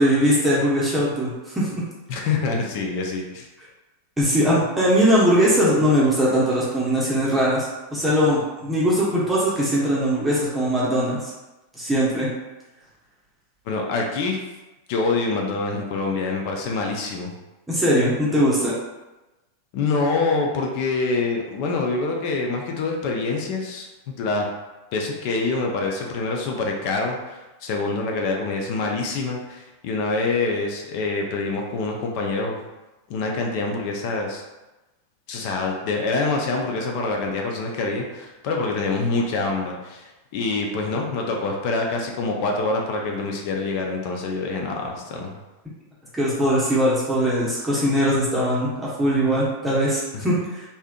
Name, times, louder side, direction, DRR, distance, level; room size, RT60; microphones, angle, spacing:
voice 1, 0.0-1.8 2.2-2.3 4.2-7.7 7.9-11.3 11.8-12.3 17.7-18.7 46.2-50.6, equal, 5° right, -7 dB, 0.8 m, -20 dB
voice 2, 2.1-3.5 13.7-14.4 14.9-17.3 19.7-23.9 24.2-24.5 24.9-32.6 33.1-34.4 35.3-45.3 50.1-50.3, left 3 dB, 45° left, 1 dB, 0.5 m, -25 dB
3.4 x 2.7 x 2.2 m, 1.1 s
figure-of-eight pair, 90°, 0 cm